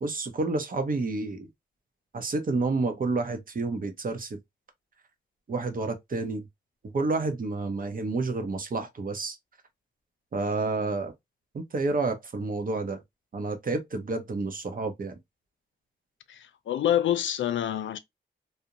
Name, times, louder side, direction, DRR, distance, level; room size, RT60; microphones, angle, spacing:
voice 1, 0.0-1.5 2.1-4.4 5.5-6.5 6.9-9.4 10.3-11.1 11.5-13.0 13.3-15.1, right 3 dB, 45° right, 0.7 m, -29 dB
voice 2, 16.3-18.0, left 11 dB, 85° left, 0.4 m, -27 dB
2.5 x 2.1 x 2.8 m
cardioid pair, 85°, 19 cm